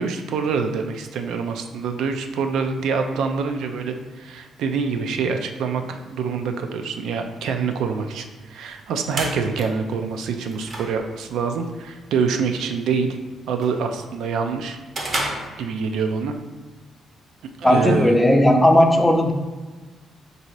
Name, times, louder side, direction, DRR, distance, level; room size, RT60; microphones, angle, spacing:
voice 1, 0.0-13.1 13.5-14.8 15.2-16.3 17.6-18.1, right 5 dB, 80° right, 6 dB, 0.4 m, -25 dB
sound 1, 8.7-16.2, right 1 dB, 35° right, 0.6 m, -34 dB
voice 2, 17.6-19.3, left 1 dB, 10° left, 3 dB, 0.4 m, -16 dB
3.8 x 2.7 x 4.5 m, 1.3 s
cardioid pair, 150°, 0 cm